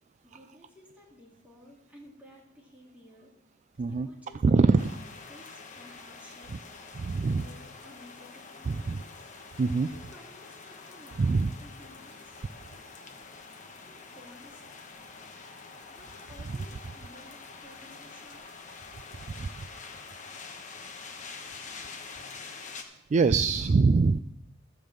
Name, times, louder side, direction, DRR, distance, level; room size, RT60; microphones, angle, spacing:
voice 1, 0.3-3.3 3.9-4.6 5.3-9.6 9.9-12.5 13.8-14.6 16.0-18.6, left 1 dB, 10° right, -4 dB, 3.1 m, -54 dB
voice 2, 4.4-4.9 6.9-7.5 8.7-9.0 9.6-9.9 11.2-11.5 19.4-19.6 23.1-24.2, right 4 dB, 35° right, 11 dB, 0.3 m, -23 dB
sound 1, 4.8-22.8, left 4 dB, 40° left, 1.1 m, -46 dB
14.0 x 5.3 x 7.6 m, 0.80 s
head